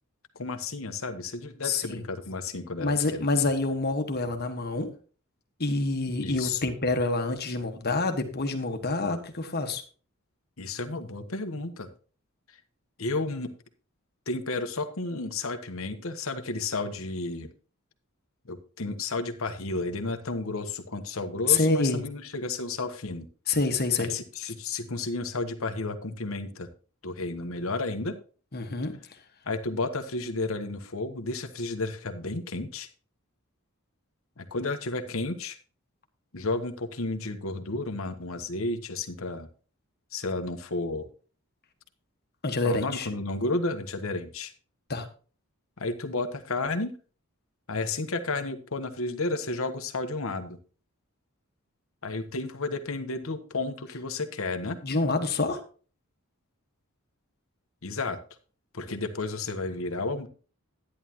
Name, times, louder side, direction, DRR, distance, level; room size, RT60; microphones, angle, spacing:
voice 1, 0.3-2.9 6.2-6.7 10.6-11.9 13.0-13.5 14.3-17.5 18.4-23.3 24.0-26.7 27.0-28.2 29.4-32.9 34.4-35.6 36.3-39.5 40.1-41.1 42.6-44.5 45.8-46.9 47.7-50.6 52.0-54.8 57.8-58.2 58.7-60.3, left 3 dB, 65° left, 7 dB, 1.1 m, -32 dB
voice 2, 1.6-2.0 2.8-4.9 5.6-9.8 21.5-22.0 23.5-24.1 28.5-28.9 42.4-43.1 44.9-45.1 54.8-55.6, left 3 dB, 50° left, 6 dB, 1.4 m, -27 dB
11.5 x 10.0 x 2.9 m, 0.38 s
head